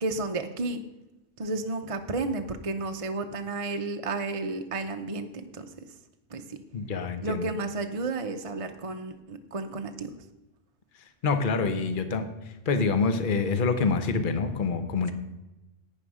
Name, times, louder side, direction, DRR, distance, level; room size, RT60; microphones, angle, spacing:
voice 1, 0.0-0.8 1.4-5.3 5.5-5.6 6.3-6.6 7.2-10.1, right 3 dB, 35° right, 6 dB, 0.7 m, -32 dB
voice 2, 6.7-7.5 11.2-12.2 12.7-15.1, left 4 dB, 45° left, 9 dB, 1.1 m, -26 dB
11.5 x 8.9 x 4.9 m, 1.0 s
omnidirectional pair, 1.3 m